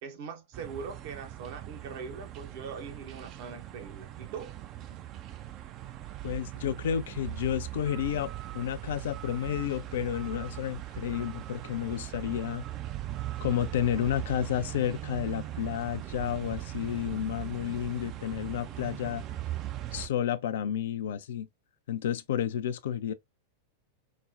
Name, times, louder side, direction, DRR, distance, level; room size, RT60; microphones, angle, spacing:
voice 1, 0.0-4.5, right 5 dB, 50° right, 0.8 m, -41 dB
sound 1, 0.5-20.1, right 13 dB, 35° right, 0.4 m, -40 dB
voice 2, 6.2-12.6 13.4-19.2 19.9-21.5 21.9-23.1, left 10 dB, 60° left, 0.3 m, -31 dB
4.1 x 2.0 x 2.4 m
figure-of-eight pair, 90°, 0 cm